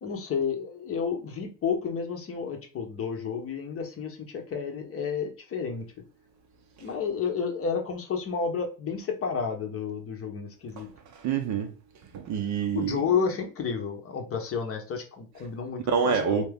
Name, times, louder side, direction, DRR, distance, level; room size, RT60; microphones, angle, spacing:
voice 1, 0.0-5.8 6.8-10.9 12.7-16.5, left 6 dB, 25° left, 0.8 m, -31 dB
voice 2, 11.1-11.7 12.1-12.9 15.9-16.5, right 6 dB, 35° right, 0.7 m, -26 dB
3.4 x 2.8 x 3.4 m
supercardioid pair, 110°, 50 cm